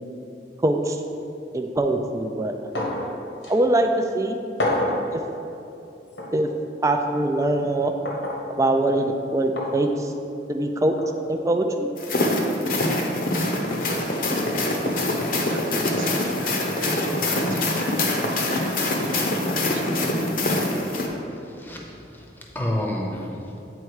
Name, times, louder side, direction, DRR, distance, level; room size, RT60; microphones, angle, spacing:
voice 1, 0.6-1.0 1.5-2.5 3.5-4.4 4.9-5.2 6.3-6.5 6.8-7.9 8.6-10.1 10.5-11.0 11.3-11.9, right 1 dB, 15° right, 4 dB, 0.3 m, -23 dB
sound 1, 2.7-3.1 3.4-3.5 4.6-5.0 6.2-6.3 8.0-8.4 9.6-9.7 11.0-11.1, left 1 dB, 70° left, 1.2 m, -26 dB
sound 2, 12.0-21.1, left 1 dB, 45° left, 0.8 m, -24 dB
voice 2, 15.4-20.2, right 3 dB, 90° right, 7 dB, 0.5 m, -40 dB
voice 3, 21.2-23.6, left 1 dB, 10° left, -1 dB, 0.7 m, -31 dB
8.1 x 4.4 x 4.8 m, 2.8 s
head